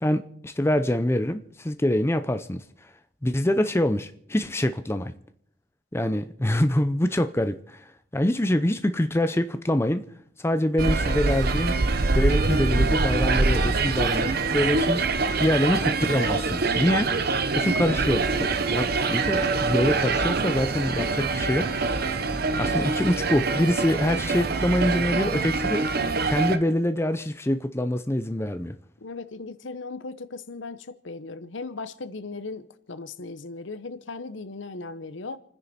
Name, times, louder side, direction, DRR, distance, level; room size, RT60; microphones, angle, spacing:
voice 1, 0.0-2.6 3.2-5.1 5.9-10.0 10.4-11.7 12.1-15.1 15.4-17.2 17.5-21.7 22.5-28.7, left 1 dB, 15° left, 0.6 m, -25 dB
sound 1, 10.8-26.6, right 3 dB, 50° right, 0.9 m, -24 dB
voice 2, 29.0-35.4, left 3 dB, 70° left, 0.9 m, -37 dB
29.5 x 10.0 x 4.2 m
head